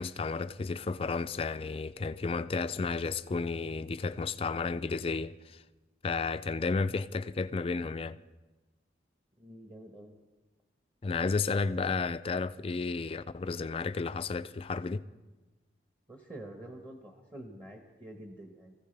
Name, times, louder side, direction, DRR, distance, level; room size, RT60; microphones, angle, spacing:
voice 1, 0.0-5.6 6.0-8.2 11.0-15.0, left 4 dB, 30° left, 0.4 m, -32 dB
voice 2, 9.4-10.2 16.1-18.7, right 1 dB, 25° right, 1.2 m, -47 dB
24.0 x 15.0 x 3.4 m
head